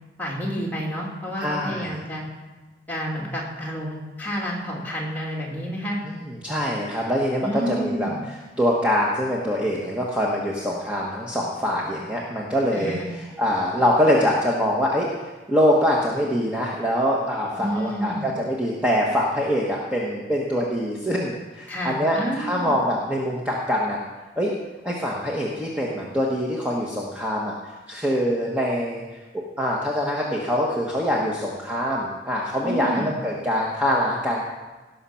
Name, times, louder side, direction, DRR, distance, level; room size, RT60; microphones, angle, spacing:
voice 1, 0.2-2.2 2.9-6.0 7.4-8.2 12.7-13.1 17.6-18.3 21.7-22.7 32.6-33.1, equal, 10° left, -4 dB, 2.6 m, -29 dB
voice 2, 1.4-2.0 6.0-8.1 8.6-15.1 15.5-24.0 24.4-24.5 24.8-27.5 27.9-29.0 29.3-34.5, equal, 5° right, -4 dB, 1.2 m, -24 dB
17.5 x 6.7 x 5.8 m, 1.2 s
head